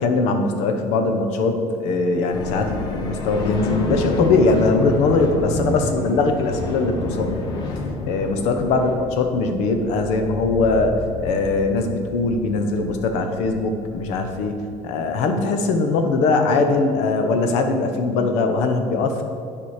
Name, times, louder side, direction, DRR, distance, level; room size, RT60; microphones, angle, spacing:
voice 1, 0.0-7.5 8.0-14.6 14.8-19.2, left 3 dB, 75° left, 5 dB, 0.9 m, -21 dB
sound 1, 2.3-14.8, left 2 dB, 40° left, 0.8 m, -30 dB
9.9 x 4.9 x 4.9 m, 2.4 s
cardioid pair, 180°, 11 cm